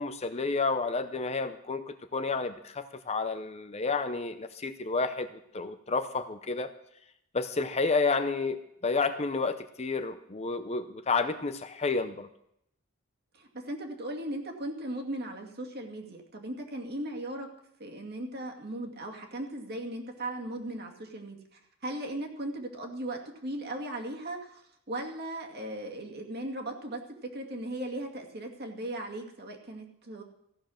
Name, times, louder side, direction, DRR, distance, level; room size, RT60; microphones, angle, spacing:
voice 1, 0.0-5.3 5.5-6.7 7.3-12.3, left 4 dB, 30° left, 9 dB, 0.6 m, -30 dB
voice 2, 13.3-17.5 17.8-30.2, right 1 dB, 50° right, 1 dB, 2.2 m, -38 dB
15.0 x 9.0 x 6.4 m, 0.75 s
head